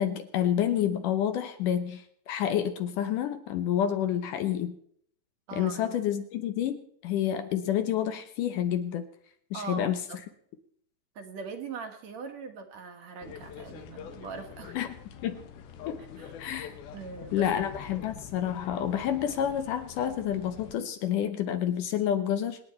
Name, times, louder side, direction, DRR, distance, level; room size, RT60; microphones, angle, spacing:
voice 1, 0.0-4.8 5.5-9.1 9.5-10.0 14.8-15.0 15.2-15.4 15.9-16.0 16.4-16.7 17.3-22.6, left 10 dB, 70° left, 8 dB, 2.3 m, -29 dB
voice 2, 5.5-5.8 9.5-10.2 11.2-14.8 16.2-16.3 16.9-17.5, right 5 dB, 55° right, 6 dB, 2.3 m, -41 dB
sound 1, 13.2-20.8, left 8 dB, 90° left, 3.1 m, -45 dB
27.0 x 9.6 x 4.4 m, 0.65 s
omnidirectional pair, 4.2 m